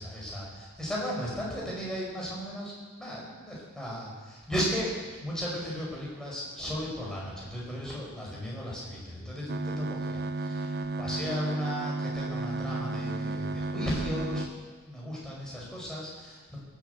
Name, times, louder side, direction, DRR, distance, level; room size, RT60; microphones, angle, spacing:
voice 1, 0.0-4.9 5.2-16.6, equal, 5° left, -5 dB, 5.1 m, -35 dB
sound 1, 9.5-14.5, right 2 dB, 45° right, 0.6 m, -33 dB
17.5 x 8.6 x 8.2 m, 1.4 s
head